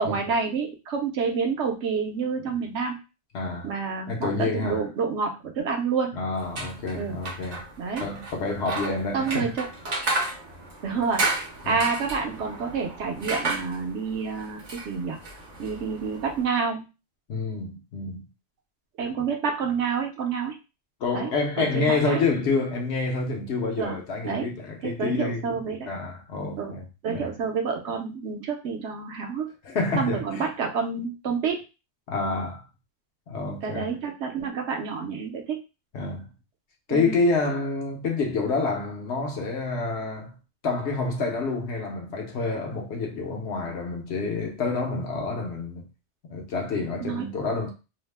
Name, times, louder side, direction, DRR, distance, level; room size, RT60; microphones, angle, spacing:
voice 1, 0.0-3.0 3.6-6.2 6.9-7.2 7.8-8.0 9.1-9.7 10.8-15.2 15.6-16.8 19.0-20.6 21.1-21.3 21.6-22.2 23.8-24.0 24.2-24.5 24.8-25.9 26.6-26.7 27.0-29.5 30.0-31.6 33.6-35.6 36.9-37.2 47.0-47.3, right 5 dB, 70° right, 0.9 m, -28 dB
voice 2, 3.3-3.7 4.1-4.9 6.1-7.6 8.0-9.5 11.6-11.8 17.3-18.3 21.0-25.6 25.9-26.8 27.1-27.3 29.6-30.4 32.1-32.6 33.3-33.9 35.9-36.3 36.9-40.4 40.6-45.9 46.3-47.7, left 3 dB, 65° left, 0.9 m, -28 dB
sound 1, 6.4-16.4, right 2 dB, 45° right, 0.7 m, -33 dB
2.8 x 2.0 x 3.2 m
omnidirectional pair, 1.3 m